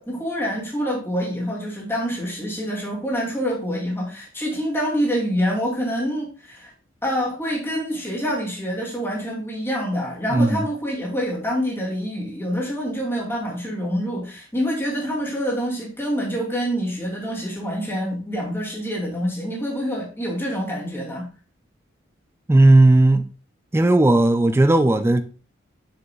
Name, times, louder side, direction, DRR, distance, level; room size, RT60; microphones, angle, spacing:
voice 1, 0.0-6.7 7.0-21.3, equal, 10° left, 2.4 m, -26 dB
voice 2, 10.3-10.7 22.5-23.3 23.7-25.2, right 2 dB, 10° right, 0.3 m, -15 dB
6.9 x 6.6 x 2.2 m
head